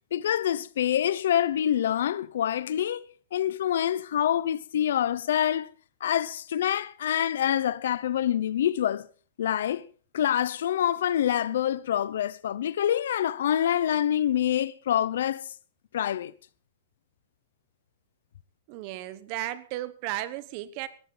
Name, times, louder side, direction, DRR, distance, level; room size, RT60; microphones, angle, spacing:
voice 1, 0.1-3.1 3.3-5.7 6.0-9.1 9.4-9.9 10.1-15.5 15.9-16.3, left 10 dB, 70° left, 0.8 m, -26 dB
voice 2, 18.7-20.9, right 15 dB, 35° right, 1.0 m, -34 dB
18.0 x 14.5 x 4.0 m
supercardioid pair, 170°, 0 cm